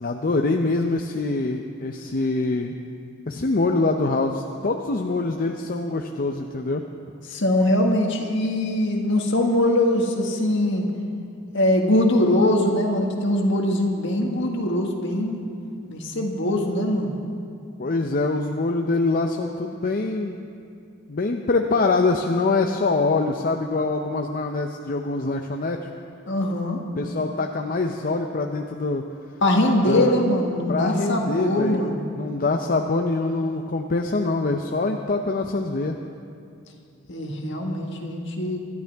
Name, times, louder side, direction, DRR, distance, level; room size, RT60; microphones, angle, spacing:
voice 1, 0.0-2.7 3.3-6.8 17.8-20.4 21.1-25.8 27.0-29.0 29.9-30.2 30.7-31.9 32.1-36.0, left 3 dB, 45° left, 3 dB, 0.6 m, -24 dB
voice 2, 7.3-10.9 11.5-15.4 15.9-17.1 26.3-26.8 29.4-32.1 37.1-38.6, left 1 dB, 65° left, 1 dB, 1.7 m, -22 dB
25.5 x 12.0 x 3.5 m, 2.5 s
head